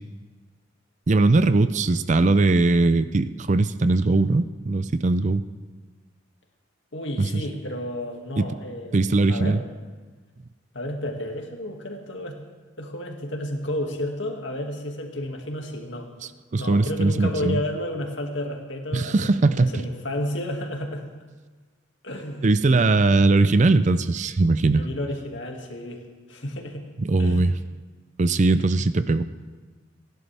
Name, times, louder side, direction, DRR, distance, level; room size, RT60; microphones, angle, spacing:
voice 1, 1.1-5.4 7.2-7.4 8.4-8.5 8.9-9.6 16.5-17.6 18.9-19.8 22.4-24.9 27.0-27.5 28.2-29.2, right 3 dB, 40° right, 13 dB, 0.5 m, -20 dB
voice 2, 6.9-9.0 9.3-9.6 10.7-12.4 12.8-16.1 16.6-21.1 22.0-22.4 24.7-26.8 27.2-27.5, left 1 dB, 70° left, 2 dB, 2.1 m, -31 dB
29.5 x 11.0 x 3.4 m, 1.4 s
head